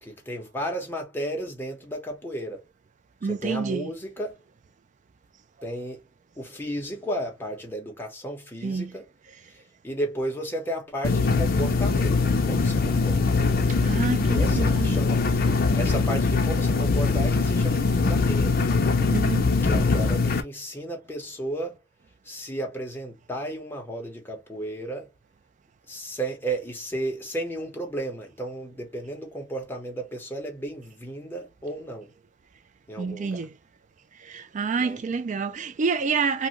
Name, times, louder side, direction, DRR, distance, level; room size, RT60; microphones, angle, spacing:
voice 1, 0.0-2.6 3.2-4.4 5.6-6.0 6.4-9.1 9.5-9.6 9.8-13.4 14.2-15.2 15.8-18.6 19.6-21.8 22.2-25.1 25.9-32.1 32.9-33.4 34.8-35.0, right 1 dB, 10° left, 1.0 m, -33 dB
voice 2, 3.2-3.9 8.6-8.9 13.8-14.9 19.1-19.5 33.0-33.5 34.2-36.5, right 5 dB, 40° right, 0.4 m, -28 dB
sound 1, 11.0-20.4, left 4 dB, 50° left, 0.6 m, -22 dB
2.7 x 2.4 x 2.9 m
head